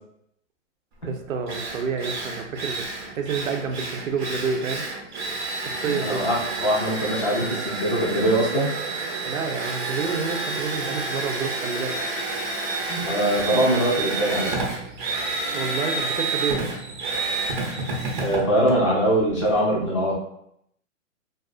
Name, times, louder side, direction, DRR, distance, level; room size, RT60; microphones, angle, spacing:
Drill, 1.0-1.1 1.5-19.6, right 3 dB, 40° right, 0.6 m, -29 dB
voice 1, 1.0-4.8 5.6-6.3 9.3-12.0 15.5-16.6, right 5 dB, 90° right, 4 dB, 0.6 m, -29 dB
voice 2, 5.8-8.7 12.9-14.8 18.2-20.1, right 1 dB, 25° left, -4 dB, 0.4 m, -22 dB
2.4 x 2.3 x 2.4 m, 0.75 s
hypercardioid pair, 155°, 39 cm